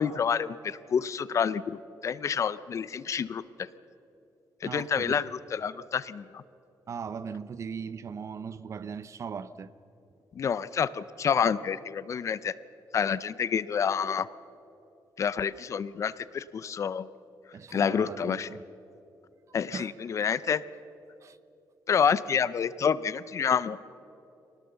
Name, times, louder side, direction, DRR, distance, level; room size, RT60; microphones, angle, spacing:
voice 1, 0.0-3.4 4.6-6.4 10.3-12.5 12.9-14.3 15.2-17.1 17.7-18.5 19.5-20.6 21.9-23.8, left 7 dB, 40° left, 17 dB, 0.5 m, -28 dB
voice 2, 4.6-5.2 6.9-9.7 17.5-18.6 19.7-19.9 21.2-21.4, right 6 dB, 40° right, 15 dB, 0.6 m, -39 dB
24.0 x 18.5 x 6.9 m, 2.9 s
wide cardioid pair, 165°, 8 cm